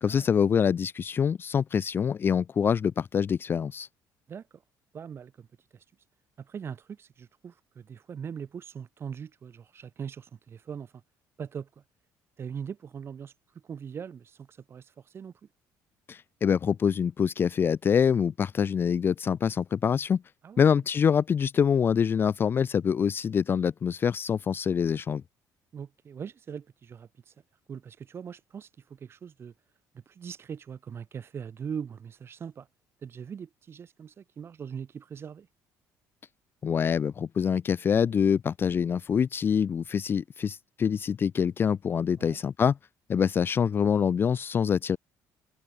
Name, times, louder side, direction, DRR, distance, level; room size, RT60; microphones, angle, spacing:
voice 1, 0.0-3.9 16.1-20.2 20.6-25.2 36.6-42.8 43.1-45.0, left 7 dB, 30° left, 0.6 m, -25 dB
voice 2, 4.3-4.6 4.9-5.5 6.4-10.9 11.4-11.7 12.4-13.3 13.6-15.3 20.4-20.8 25.7-27.3 27.7-29.5 30.1-32.7 33.0-35.5 42.2-42.4, right 7 dB, 35° right, 7.1 m, -41 dB
cardioid pair, 140°, 7 cm